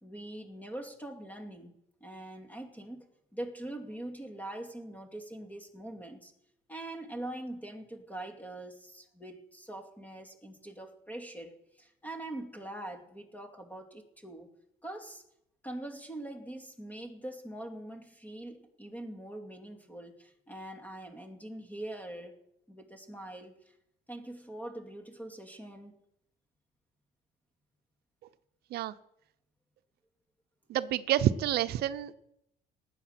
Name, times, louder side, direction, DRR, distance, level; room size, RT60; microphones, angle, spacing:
voice 1, 0.0-1.7 2.0-6.3 6.7-14.5 14.8-15.2 15.6-22.4 22.7-23.5 24.1-25.9, right 1 dB, 10° left, 2.5 m, -43 dB
voice 2, 30.7-32.2, right 12 dB, 70° right, 0.7 m, -28 dB
19.0 x 8.4 x 5.9 m
cardioid pair, 110°, 17 cm